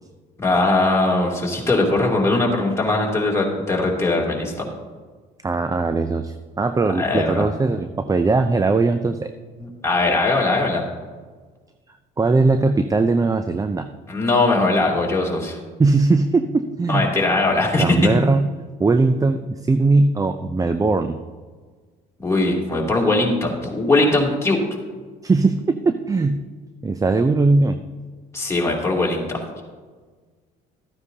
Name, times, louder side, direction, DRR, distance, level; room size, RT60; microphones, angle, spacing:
voice 1, 0.4-4.5 7.0-7.5 9.6-10.9 14.1-15.6 16.9-18.1 22.2-24.6 28.3-29.4, left 2 dB, 15° left, -3 dB, 2.8 m, -20 dB
voice 2, 5.4-9.3 12.2-13.9 15.8-17.1 17.8-18.5 18.8-21.2 25.2-26.4 26.8-27.8, right 3 dB, 20° right, 9 dB, 0.5 m, -19 dB
14.0 x 9.5 x 2.8 m, 1.4 s
supercardioid pair, 75°, 19 cm